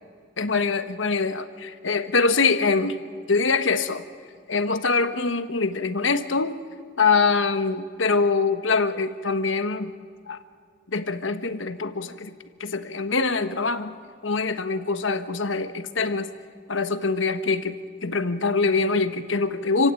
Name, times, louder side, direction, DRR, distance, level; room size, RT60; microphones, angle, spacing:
voice 1, 0.4-3.0 3.3-4.0 4.5-6.6 7.0-9.9 10.3-10.4 10.9-12.3 12.6-14.0 14.2-16.3 16.7-17.7 18.0-19.9, left 4 dB, 70° left, 10 dB, 1.3 m, -24 dB
29.0 x 16.5 x 9.0 m, 2.1 s
head